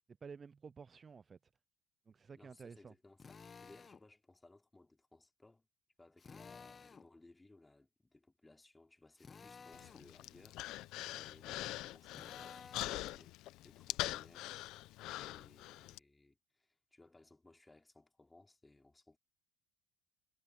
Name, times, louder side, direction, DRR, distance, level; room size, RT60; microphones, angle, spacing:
voice 1, 0.2-1.4 2.1-2.9, right 5 dB, 30° right, 0.5 m, -52 dB
voice 2, 2.4-5.7 6.0-10.8 11.1-14.5 15.1-19.2, left 2 dB, 10° left, 3.2 m, -63 dB
Drill, 3.2-4.0 6.2-7.1 9.2-10.1 12.1-13.1, left 5 dB, 30° left, 1.0 m, -54 dB
Human voice, 9.7-16.0, left 16 dB, 70° left, 0.7 m, -43 dB
supercardioid pair, 105°, 0 cm